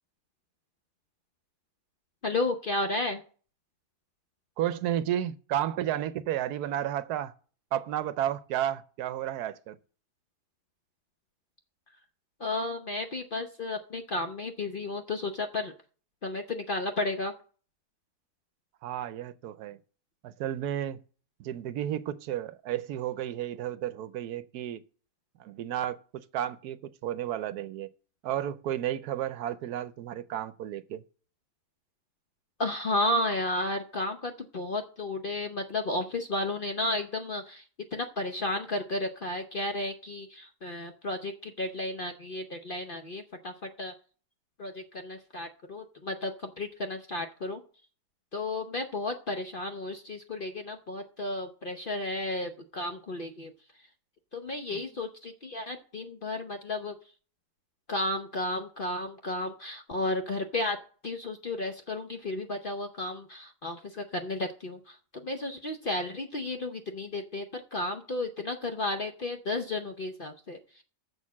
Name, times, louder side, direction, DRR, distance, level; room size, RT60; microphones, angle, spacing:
voice 1, 2.2-3.2 12.4-15.7 16.2-17.3 32.6-37.7 37.9-43.9 44.6-47.6 48.3-53.5 54.3-56.9 57.9-60.8 61.0-70.8, left 2 dB, 45° left, 0.7 m, -33 dB
voice 2, 4.6-7.3 7.7-9.8 18.8-19.8 20.2-21.0 21.4-24.8 25.4-27.9 28.2-31.0 54.7-54.8, right 11 dB, 75° right, 1.1 m, -32 dB
7.1 x 6.4 x 7.2 m
omnidirectional pair, 1.7 m